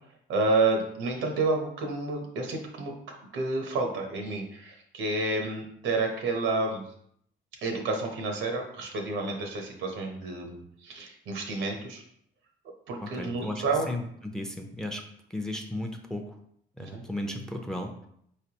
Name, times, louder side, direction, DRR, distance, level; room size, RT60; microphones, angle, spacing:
voice 1, 0.3-2.9 3.3-6.8 7.6-12.0 12.9-13.9 16.9-17.0, right 3 dB, 80° right, 2 dB, 1.0 m, -29 dB
voice 2, 13.0-15.0 15.3-16.4 16.8-18.1, left 1 dB, 5° left, 3 dB, 0.6 m, -35 dB
4.5 x 3.3 x 2.9 m, 0.70 s
cardioid pair, 90°, 20 cm